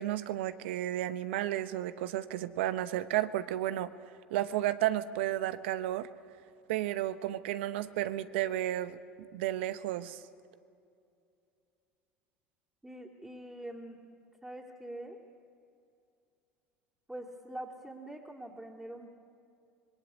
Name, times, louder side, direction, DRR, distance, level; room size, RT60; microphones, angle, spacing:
voice 1, 0.0-3.9 4.3-6.1 6.7-9.0 9.3-10.2, right 13 dB, 75° right, 13 dB, 1.0 m, -32 dB
voice 2, 12.8-14.0 14.4-15.2 17.1-19.1, right 1 dB, 10° right, -3 dB, 3.2 m, -44 dB
25.5 x 21.5 x 8.5 m, 2.5 s
hypercardioid pair, 75°, 6 cm